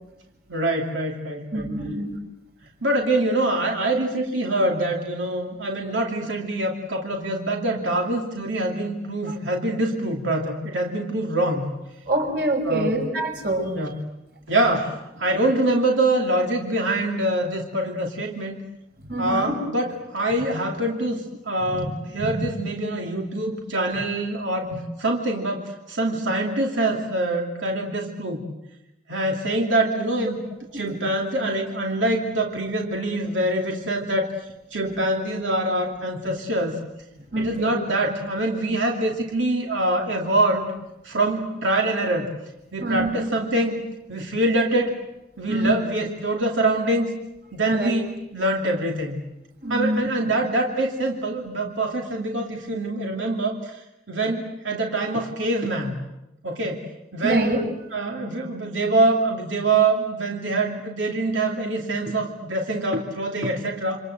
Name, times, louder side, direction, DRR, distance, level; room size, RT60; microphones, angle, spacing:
voice 1, 0.5-1.7 2.8-11.7 12.7-12.9 13.7-13.9 14.5-18.6 19.2-24.7 25.0-28.5 29.1-30.4 30.7-34.3 34.7-36.8 37.3-40.7 41.0-42.3 42.7-43.8 44.1-45.0 45.4-47.1 47.5-49.2 49.7-53.8 54.1-56.0 56.4-56.8 57.1-57.5 57.9-64.0, right 2 dB, 90° right, 1 dB, 2.7 m, -24 dB
voice 2, 1.5-2.2 9.3-9.4 12.0-14.0 19.0-19.6 21.7-21.9 22.2-22.5 24.7-24.8 30.3-30.4 30.7-30.8 37.2-37.7 42.8-43.1 45.5-45.7 47.7-47.9 49.6-50.0 57.2-57.6, right 1 dB, 55° right, 3 dB, 5.5 m, -26 dB
28.5 x 26.0 x 7.9 m, 0.89 s
head